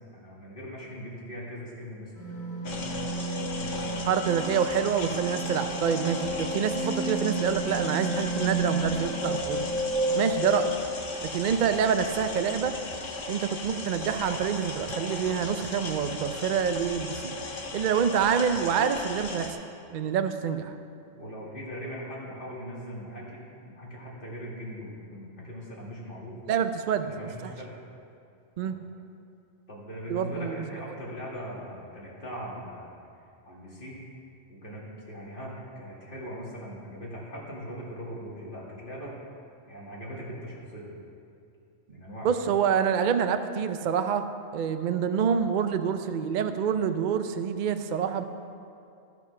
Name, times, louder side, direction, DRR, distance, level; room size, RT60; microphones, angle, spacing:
voice 1, 0.1-2.1 2.6-4.0 18.3-18.4 21.2-26.4 27.0-27.8 28.6-28.7 29.7-32.9 33.4-34.0 34.5-39.2 39.7-40.9 41.9-42.3, equal, 40° left, -5 dB, 2.3 m, -40 dB
sound 1, 2.2-10.8, right 1 dB, 25° left, 2.0 m, -31 dB
sound 2, 2.7-19.5, left 3 dB, 90° left, 1.6 m, -37 dB
voice 2, 4.1-9.7 10.1-10.7 11.2-12.8 13.3-17.4 17.7-19.6 19.9-20.7 26.5-27.1 27.4-27.5 28.6-28.8 30.1-30.6 42.2-44.3 44.5-48.2, right 7 dB, 60° right, 9 dB, 0.5 m, -27 dB
14.0 x 6.0 x 5.8 m, 2.5 s
omnidirectional pair, 1.3 m